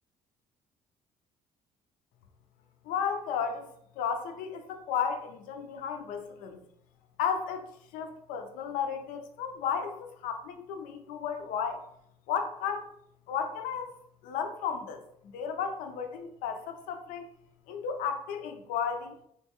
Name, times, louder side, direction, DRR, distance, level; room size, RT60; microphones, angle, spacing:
voice 1, 2.8-3.7 4.0-6.6 7.2-7.6 7.9-11.8 12.3-12.9 13.3-13.9 14.2-15.0 15.3-17.3 17.7-19.2, left 7 dB, 85° left, 6 dB, 0.5 m, -33 dB
3.7 x 2.3 x 2.8 m, 0.72 s
supercardioid pair, 80°, 14 cm